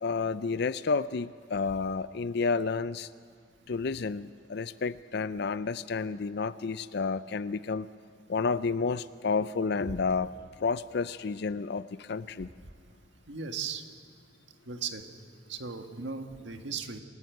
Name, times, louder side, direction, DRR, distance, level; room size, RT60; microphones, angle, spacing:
voice 1, 0.0-3.1 3.7-7.9 8.3-10.3 10.6-12.5, left 4 dB, 65° left, 14 dB, 0.5 m, -30 dB
voice 2, 13.3-13.8 14.7-15.0 15.5-17.0, right 5 dB, 80° right, 6 dB, 1.7 m, -37 dB
27.0 x 15.5 x 9.3 m, 2.1 s
head